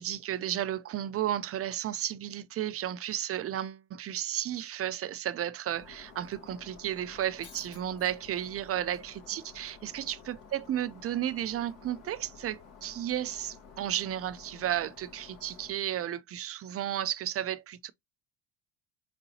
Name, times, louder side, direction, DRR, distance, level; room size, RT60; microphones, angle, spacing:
voice 1, 0.0-17.9, right 11 dB, 40° right, 0.5 m, -33 dB
Shatter, 5.8-15.7, left 5 dB, 65° left, 2.3 m, -52 dB
3.9 x 3.7 x 2.8 m
supercardioid pair, 85°, 38 cm